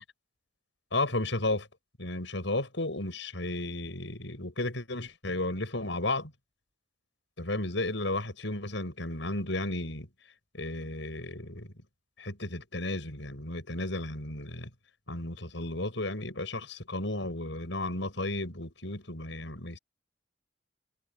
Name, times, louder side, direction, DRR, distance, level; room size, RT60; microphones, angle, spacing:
voice 1, 0.9-1.7 2.0-6.3 7.4-10.1 10.5-11.7 12.2-14.7 15.1-19.8, left 2 dB, 70° left, 7.0 m, -33 dB
head